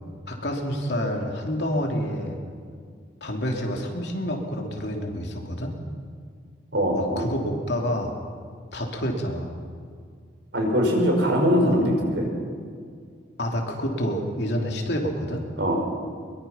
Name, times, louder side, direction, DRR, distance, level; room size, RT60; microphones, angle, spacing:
voice 1, 0.3-2.4 3.2-5.8 7.0-8.1 8.7-9.5 13.4-15.5, equal, 60° left, 1 dB, 3.2 m, -28 dB
voice 2, 6.7-7.2 10.5-12.3 15.6-15.7, equal, 60° right, 1 dB, 5.5 m, -21 dB
23.0 x 23.0 x 5.8 m, 2.1 s
head